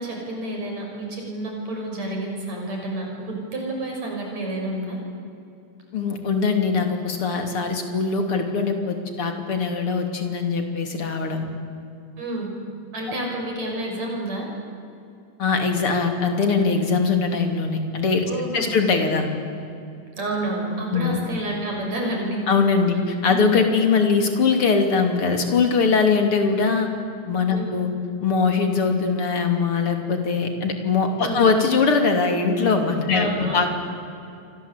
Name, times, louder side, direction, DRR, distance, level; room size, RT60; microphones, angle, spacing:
voice 1, 0.0-5.0 12.2-12.5 12.9-14.5 18.3-18.7 20.2-22.4 23.3-23.4 27.6-27.7 31.2-31.6 33.1-33.7, right 1 dB, 60° right, 0 dB, 7.2 m, -29 dB
voice 2, 5.9-11.5 15.4-19.3 20.9-21.2 22.5-26.9 27.3-27.9 28.2-33.7, left 4 dB, 45° left, 5 dB, 3.6 m, -21 dB
28.5 x 24.5 x 8.3 m, 2.6 s
omnidirectional pair, 3.6 m